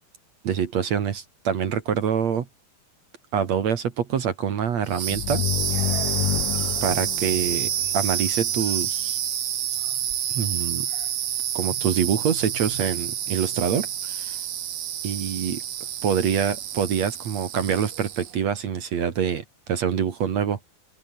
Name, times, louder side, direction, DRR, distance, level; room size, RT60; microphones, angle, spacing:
voice 1, 0.4-2.5 3.3-5.4 6.8-9.2 10.3-10.9 11.5-14.4 15.0-15.6 16.0-20.6, right 7 dB, 50° right, 2.6 m, -25 dB
sound 1, 4.9-18.4, right 10 dB, 80° right, 4.2 m, -28 dB
sound 2, 5.1-8.7, left 19 dB, 85° left, 2.0 m, -29 dB
open air
omnidirectional pair, 4.4 m